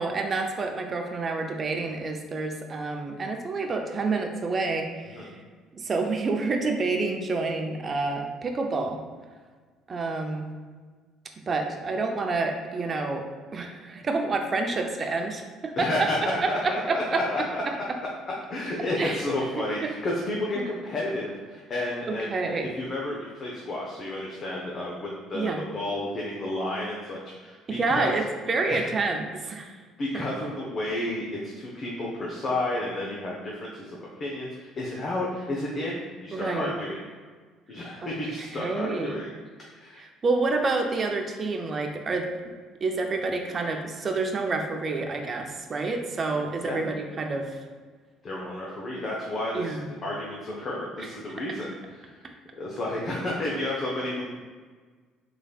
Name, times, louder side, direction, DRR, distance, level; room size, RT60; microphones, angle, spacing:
voice 1, 0.0-5.3 5.7-9.0 9.9-10.5 11.5-16.1 16.4-17.2 19.0-19.2 20.6-20.7 22.1-22.7 25.3-25.6 27.7-29.8 36.3-36.7 38.0-38.1 38.5-39.2 40.0-42.5 42.8-47.6 49.5-49.9, right 3 dB, 40° right, 4 dB, 0.5 m, -28 dB
voice 2, 15.8-17.6 18.5-28.1 28.7-28.9 30.0-37.0 37.7-39.3 39.8-40.0 46.6-46.8 48.2-49.7 50.0-52.2 52.6-54.2, left 1 dB, 45° left, -3 dB, 0.7 m, -31 dB
3.8 x 3.2 x 2.3 m, 1.5 s
hypercardioid pair, 60°, 0 cm